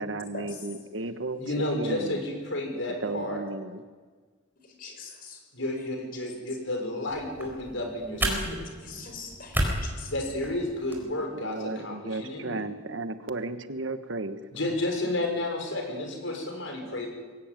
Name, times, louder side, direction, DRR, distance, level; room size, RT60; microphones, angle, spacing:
voice 1, 0.0-2.2 3.0-3.8 11.3-14.4, right 2 dB, 70° right, 9 dB, 1.3 m, -34 dB
voice 2, 1.4-3.4 5.5-8.3 8.6-8.7 10.1-12.6 14.5-17.1, left 1 dB, 75° left, 2 dB, 6.2 m, -31 dB
voice 3, 4.8-5.4 8.2-8.5 8.8-10.1, left 2 dB, 45° left, 4 dB, 5.1 m, -40 dB
sound 1, 7.1-11.1, right 1 dB, 10° right, 4.4 m, -33 dB
22.0 x 18.0 x 9.1 m, 1.4 s
head